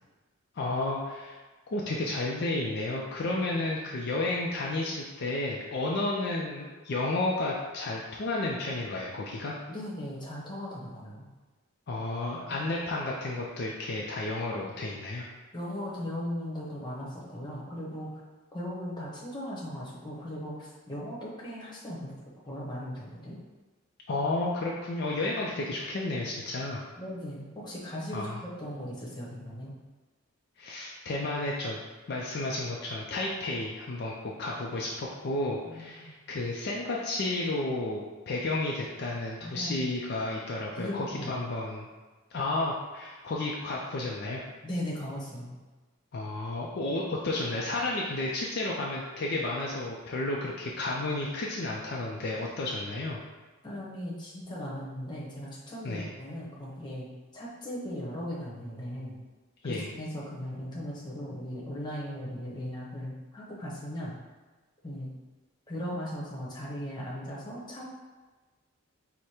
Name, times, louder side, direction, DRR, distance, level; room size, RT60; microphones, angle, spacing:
voice 1, 0.5-1.4 1.7-9.5 11.9-15.3 24.1-26.8 28.1-28.4 30.6-31.8 32.1-34.1 34.4-41.9 42.3-44.4 46.1-53.2 55.8-56.1 59.6-59.9, left 2 dB, 50° left, -3 dB, 0.4 m, -32 dB
voice 2, 9.7-11.3 15.5-18.2 18.5-22.2 22.5-23.4 27.0-29.8 35.6-36.1 39.4-39.8 40.8-41.3 44.6-45.6 53.6-57.1 57.3-59.2 59.6-64.1 64.8-65.1 65.7-67.9, equal, 20° left, -6 dB, 0.9 m, -38 dB
4.8 x 2.1 x 4.3 m, 1.3 s
head